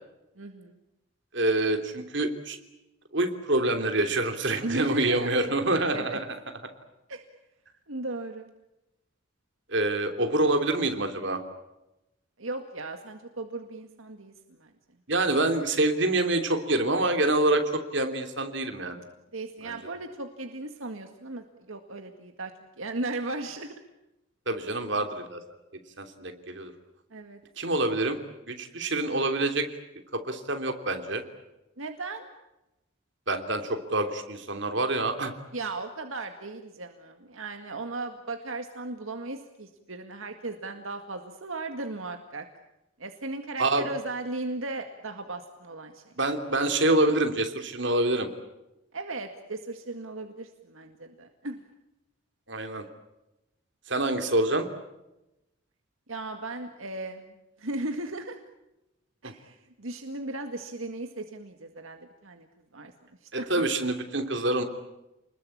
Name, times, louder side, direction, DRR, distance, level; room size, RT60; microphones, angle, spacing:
voice 1, 0.4-0.8 4.6-5.3 5.9-6.2 7.1-7.2 7.9-8.5 12.4-14.7 19.3-22.5 22.8-23.8 27.1-27.4 31.8-32.3 35.5-42.5 43.0-46.2 48.9-51.6 56.1-58.4 59.2-62.5 62.7-62.9 63.2-63.5, right 2 dB, 80° right, 5 dB, 2.0 m, -36 dB
voice 2, 1.3-2.6 3.1-6.2 9.7-11.4 15.1-19.0 19.6-19.8 24.5-25.4 26.0-26.7 27.6-28.2 28.5-29.7 30.1-31.2 33.3-35.3 43.6-43.9 46.2-48.3 52.5-52.8 53.9-54.7 59.2-59.3 63.3-64.6, right 2 dB, 60° right, 6 dB, 3.1 m, -26 dB
29.5 x 21.0 x 8.7 m, 0.95 s
head